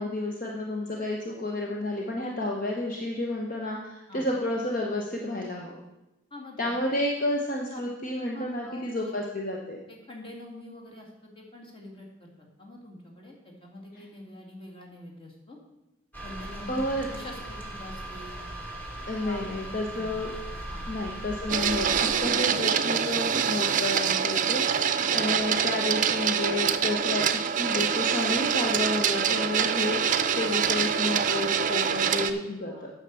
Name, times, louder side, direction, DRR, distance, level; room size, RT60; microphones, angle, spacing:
voice 1, 0.0-5.8 6.6-9.8 16.7-17.1 19.1-20.3 20.9-21.9 22.2-27.2 27.6-30.0 30.3-32.9, left 1 dB, 45° left, -1 dB, 1.1 m, -31 dB
voice 2, 6.3-6.7 7.7-7.8 8.3-8.9 9.9-12.3 12.6-15.6 16.2-18.4 19.2-19.5 19.9-20.1 20.7-20.8 25.1-25.2 32.0-32.9, left 1 dB, 25° left, -1 dB, 2.2 m, -45 dB
sound 1, 16.1-22.5, right 1 dB, 10° left, 1.5 m, -39 dB
Printer, 21.5-32.3, right 7 dB, 40° right, 0.6 m, -25 dB
9.1 x 6.5 x 6.9 m, 0.96 s
head